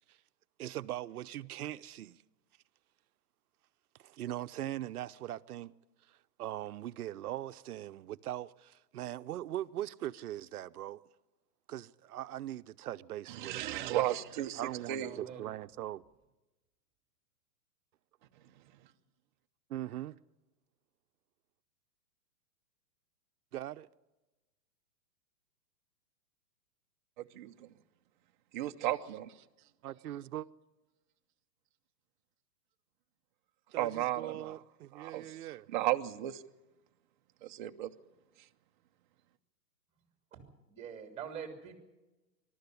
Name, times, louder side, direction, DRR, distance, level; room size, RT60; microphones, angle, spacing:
voice 1, 0.6-2.2 4.0-5.7 6.1-11.0 11.7-14.1 14.5-16.0 19.7-20.2 23.5-23.9 29.8-30.5 33.7-35.7, right 13 dB, 65° right, 0.8 m, -41 dB
voice 2, 13.3-14.6 14.9-15.1 27.3-27.7 28.5-29.3 33.8-34.5 34.9-35.4 35.7-36.4 37.4-37.9, right 13 dB, 30° right, 0.7 m, -34 dB
voice 3, 15.0-15.4 40.3-41.7, right 7 dB, 15° right, 3.1 m, -45 dB
21.5 x 12.5 x 9.7 m
hypercardioid pair, 155°, 49 cm